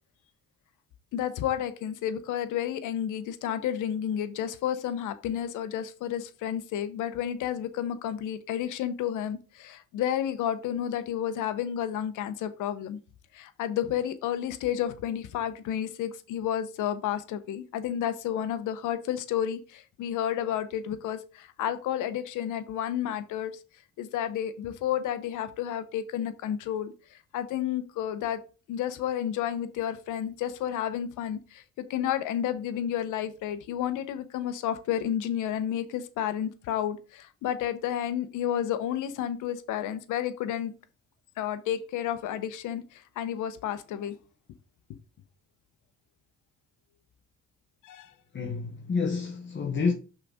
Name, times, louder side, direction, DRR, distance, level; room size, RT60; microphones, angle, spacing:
voice 1, 1.1-13.0 13.3-23.5 24.0-28.4 28.7-31.6 31.9-40.7 41.4-44.2 47.8-48.1, left 10 dB, 90° left, 0.9 m, -31 dB
voice 2, 48.3-49.9, left 4 dB, 40° left, 1.1 m, -28 dB
5.8 x 4.1 x 5.0 m
cardioid pair, 90°, 30 cm